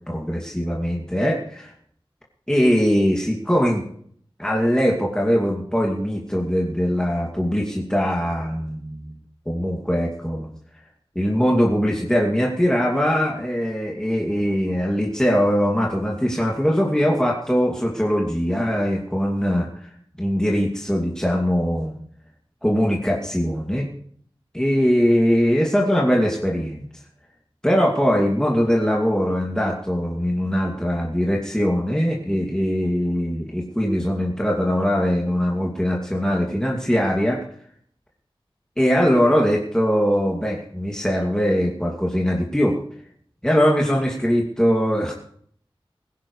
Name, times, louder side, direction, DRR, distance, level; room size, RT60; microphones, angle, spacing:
voice 1, 0.1-1.7 2.5-3.8 4.4-9.2 9.5-10.5 11.2-19.9 20.2-21.9 22.6-23.9 24.5-26.9 27.6-37.4 38.8-42.8 43.4-45.1, equal, 5° left, -2 dB, 2.4 m, -21 dB
20.5 x 16.0 x 3.2 m, 0.62 s
wide cardioid pair, 55°, 10 cm